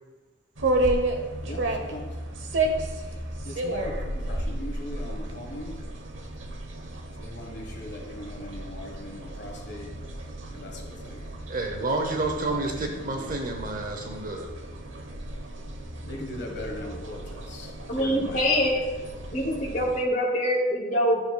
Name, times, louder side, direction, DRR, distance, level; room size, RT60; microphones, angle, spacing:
sound 1, 0.6-20.1, right 1 dB, 75° right, 1.0 m, -33 dB
voice 1, 1.4-2.2 3.0-5.9 7.2-10.0 10.5-11.3 12.5-13.4 16.1-18.7, left 1 dB, 55° left, 1 dB, 1.4 m, -40 dB
voice 2, 11.5-14.5, right 2 dB, 45° right, 3 dB, 0.7 m, -29 dB
voice 3, 17.9-18.8 19.3-21.2, equal, 40° left, -4 dB, 2.4 m, -24 dB
12.0 x 6.9 x 2.3 m, 1.2 s
head